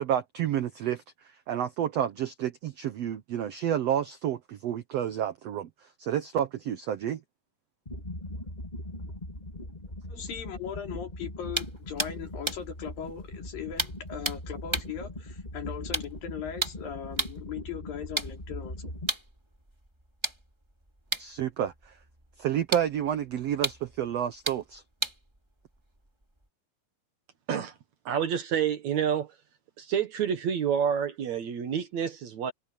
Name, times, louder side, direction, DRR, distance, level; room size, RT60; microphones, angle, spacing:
voice 1, 0.0-7.2 21.2-22.0 22.4-24.8, right 10 dB, 75° right, 1.4 m, -30 dB
sound 1, 7.9-19.1, left 1 dB, 15° left, 2.3 m, -40 dB
voice 2, 10.1-18.9, left 8 dB, 75° left, 4.9 m, -39 dB
sound 2, 11.5-17.5 18.0-26.5, right 1 dB, 10° right, 2.2 m, -37 dB
voice 3, 28.1-29.3 29.8-32.5, right 8 dB, 60° right, 2.4 m, -28 dB
omnidirectional pair, 4.1 m